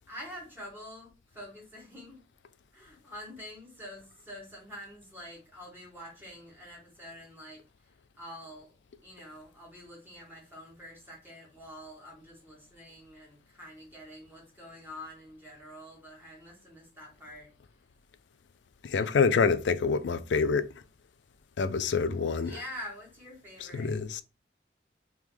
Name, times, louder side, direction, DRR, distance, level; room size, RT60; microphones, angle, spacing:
voice 1, 0.1-2.2 2.7-7.6 8.2-8.7 9.0-17.5 18.9-19.2 22.4-23.9, equal, 10° right, 1.7 m, -46 dB
voice 2, 18.8-20.7 21.6-22.6 23.6-24.2, left 5 dB, 85° left, 0.4 m, -27 dB
3.6 x 3.1 x 3.1 m
head